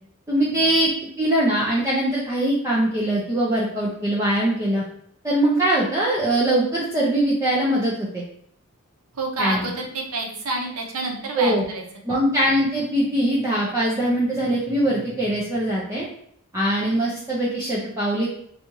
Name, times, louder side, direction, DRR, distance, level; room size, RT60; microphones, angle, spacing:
voice 1, 0.3-4.8 5.2-8.2 9.4-9.7 11.3-11.6 12.1-16.1 16.5-18.3, right 1 dB, 15° right, -7 dB, 0.5 m, -22 dB
voice 2, 9.1-12.2, right 2 dB, 80° right, 1 dB, 0.8 m, -29 dB
4.1 x 2.4 x 3.0 m, 0.67 s
head